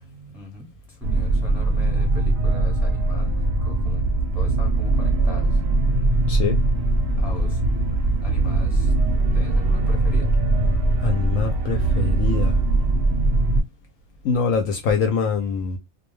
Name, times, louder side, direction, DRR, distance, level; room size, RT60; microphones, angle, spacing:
voice 1, 0.3-0.7 1.0-4.0 4.3-5.6 7.2-7.6 8.2-8.9 9.3-10.3, left 1 dB, ahead, 0.7 m, -40 dB
sound 1, 1.0-13.6, right 2 dB, 55° right, 0.7 m, -21 dB
voice 2, 11.0-12.6 14.2-15.8, left 5 dB, 70° left, 0.9 m, -24 dB
2.3 x 2.2 x 3.0 m
omnidirectional pair, 1.6 m